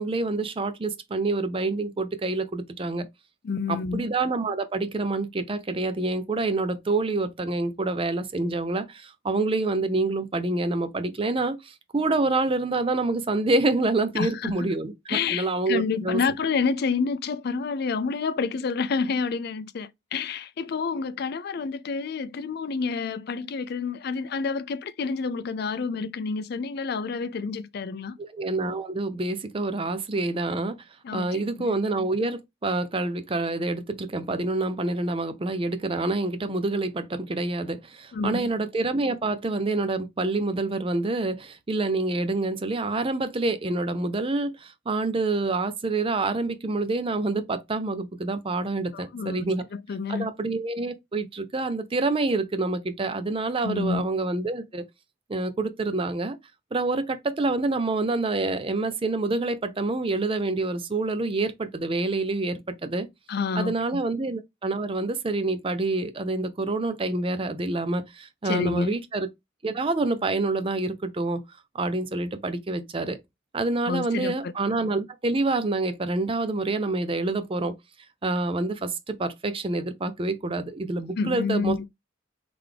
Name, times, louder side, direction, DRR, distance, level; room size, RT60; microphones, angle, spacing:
voice 1, 0.0-3.1 3.7-16.2 28.3-30.8 31.1-49.6 50.1-54.8 55.3-56.4 56.7-63.1 63.6-69.3 69.6-71.4 71.7-73.2 73.5-77.7 78.2-81.9, right 2 dB, 30° right, 0.5 m, -27 dB
voice 2, 3.4-4.1 14.2-14.5 15.1-28.2 31.0-31.7 38.1-38.5 48.9-49.5 49.9-50.3 53.6-54.0 63.3-64.0 68.4-68.9 73.8-74.5 81.2-81.9, left 5 dB, 55° left, 0.4 m, -29 dB
3.8 x 3.4 x 3.3 m
head